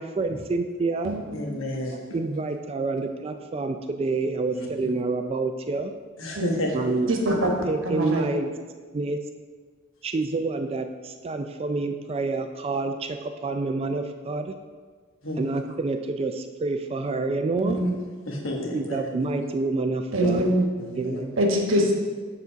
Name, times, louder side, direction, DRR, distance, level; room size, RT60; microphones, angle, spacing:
voice 1, 0.0-1.1 2.1-5.9 6.7-7.1 7.6-8.5 8.9-9.2 10.0-14.5 15.4-17.8 18.7-20.5 21.0-21.4, right 3 dB, 30° right, 7 dB, 0.3 m, -28 dB
voice 2, 1.3-2.0 4.5-4.6 6.2-6.8 15.2-15.4 18.3-19.0 20.8-21.2, left 1 dB, 70° left, 0 dB, 1.3 m, -31 dB
voice 3, 7.1-7.5 7.8-8.2 17.6-18.0 20.1-20.7 21.4-21.9, right 1 dB, 70° right, 1 dB, 1.2 m, -23 dB
7.3 x 3.9 x 5.6 m, 1.5 s
head